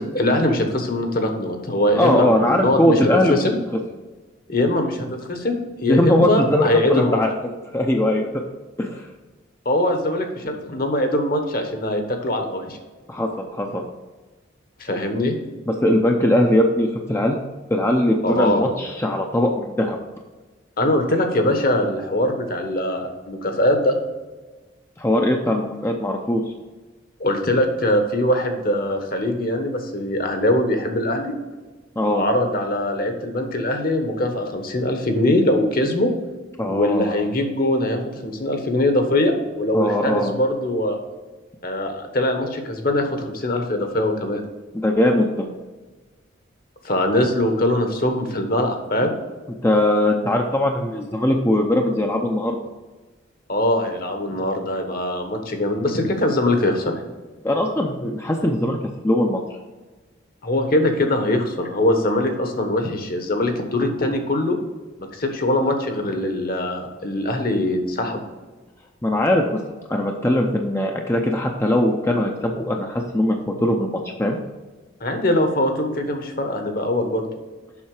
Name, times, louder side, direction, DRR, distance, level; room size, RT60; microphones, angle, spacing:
voice 1, 0.0-3.0 3.3-3.6 4.5-7.2 9.6-12.8 14.8-15.3 18.2-18.7 20.8-24.0 27.2-31.3 32.1-36.1 36.7-41.0 41.6-44.4 46.8-49.1 53.5-56.9 60.4-64.6 65.1-68.2 75.0-77.2, left 1 dB, 50° left, 5 dB, 1.2 m, -22 dB
voice 2, 1.9-3.4 5.9-7.3 7.7-8.3 8.8-9.1 13.1-13.8 15.7-17.4 17.7-20.0 25.0-26.4 32.0-32.2 36.6-37.2 39.7-40.3 44.8-45.5 49.6-52.6 57.4-58.8 59.0-59.4 69.0-69.6 69.9-73.9 74.2-74.4, left 1 dB, 15° left, 2 dB, 0.5 m, -20 dB
7.2 x 5.8 x 4.8 m, 1.3 s
head